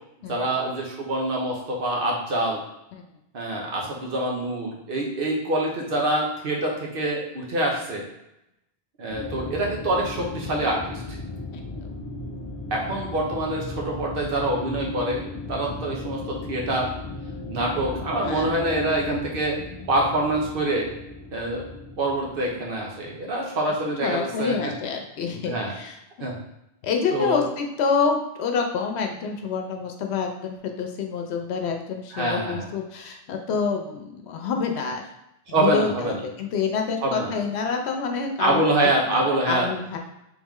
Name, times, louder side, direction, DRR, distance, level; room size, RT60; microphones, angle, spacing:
voice 1, 0.3-2.6 3.3-8.0 9.0-10.9 12.7-16.9 17.5-19.6 19.9-20.9 21.3-21.6 22.0-24.5 25.5-25.8 26.2-26.4 27.1-27.4 32.1-32.7 35.5-36.2 37.0-37.3 38.4-39.7, right 1 dB, 60° right, -1 dB, 1.1 m, -25 dB
sound 1, 9.1-23.3, left 2 dB, 35° left, 0.4 m, -36 dB
voice 2, 23.8-26.3 26.8-35.0 35.6-40.0, left 5 dB, 90° left, 3 dB, 0.9 m, -27 dB
3.5 x 3.1 x 3.6 m, 0.84 s
omnidirectional pair, 1.1 m